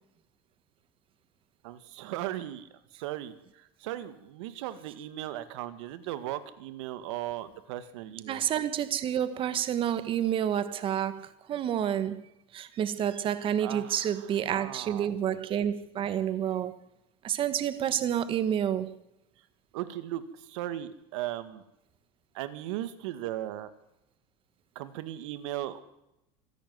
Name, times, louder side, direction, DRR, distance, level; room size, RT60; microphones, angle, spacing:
voice 1, 1.6-2.7 3.0-3.3 3.8-8.4 13.6-14.0 14.5-15.1 19.7-20.2 20.5-21.6 22.3-23.7 24.8-25.8, right 13 dB, 80° right, 2.0 m, -37 dB
voice 2, 8.3-12.2 12.5-16.8 17.2-19.0, right 10 dB, 35° right, 1.5 m, -29 dB
25.5 x 11.5 x 9.5 m
supercardioid pair, 140°, 15 cm